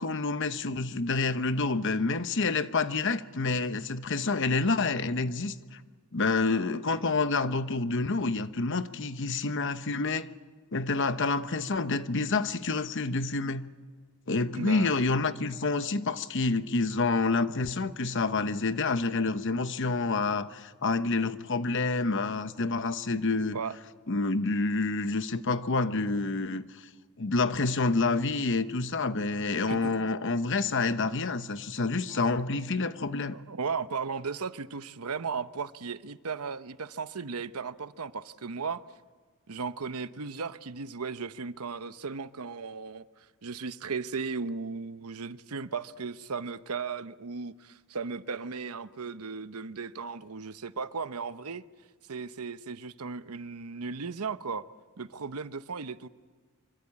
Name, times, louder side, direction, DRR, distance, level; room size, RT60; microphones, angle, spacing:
voice 1, 0.0-5.8 6.1-10.3 10.7-13.7 14.3-23.6 24.1-26.9 27.2-33.4, left 3 dB, 55° left, 1.0 m, -28 dB
voice 2, 14.5-14.9 23.5-23.8 29.7-29.9 32.1-32.2 33.3-38.8 39.5-43.0 43.4-51.6 52.1-54.6 55.0-56.1, right 5 dB, 85° right, 0.9 m, -36 dB
25.5 x 24.5 x 8.6 m
head